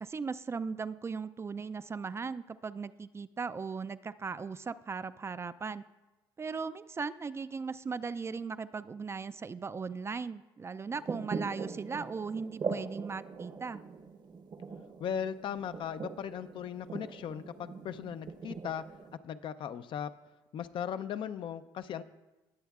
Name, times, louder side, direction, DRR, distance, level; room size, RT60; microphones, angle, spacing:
voice 1, 0.0-5.8 6.4-13.8, right 5 dB, 25° right, 13 dB, 0.3 m, -38 dB
sound 1, 10.9-19.2, right 5 dB, 45° right, 0.8 m, -41 dB
voice 2, 15.0-18.8 19.2-20.1 20.5-22.0, left 8 dB, 60° left, 12 dB, 0.5 m, -37 dB
19.0 x 7.1 x 2.4 m, 1.1 s
supercardioid pair, 75°, 10 cm